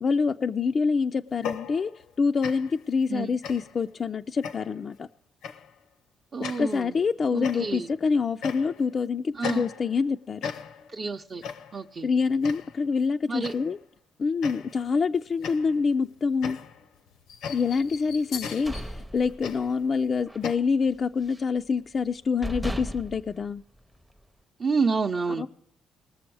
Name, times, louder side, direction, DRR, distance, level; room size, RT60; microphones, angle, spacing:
voice 1, 0.0-5.1 6.6-10.5 12.0-13.8 14.2-16.6 17.5-23.6 25.3-25.5, left 5 dB, 45° left, 0.3 m, -26 dB
sound 1, 1.3-2.1 2.4-2.8 3.4-3.9 4.4-4.9 5.4-5.7 6.4-6.8 7.4-7.9 8.4-8.9 9.4-10.1 10.4-11.0 11.4-11.8 12.4-12.8 13.4-13.8 14.4-14.9 15.4-20.6, left 7 dB, 85° left, 0.8 m, -38 dB
voice 2, 6.3-6.9 7.3-7.9 9.4-9.6 10.9-11.4 11.7-12.1 13.3-13.5 24.6-25.5, right 4 dB, 40° right, 0.6 m, -29 dB
sound 2, 18.3-19.9 20.2-20.5 20.8-21.6 22.1-22.2 22.4-24.2, equal, 5° right, 0.6 m, -36 dB
20.0 x 6.9 x 4.6 m
cardioid pair, 90°, 0 cm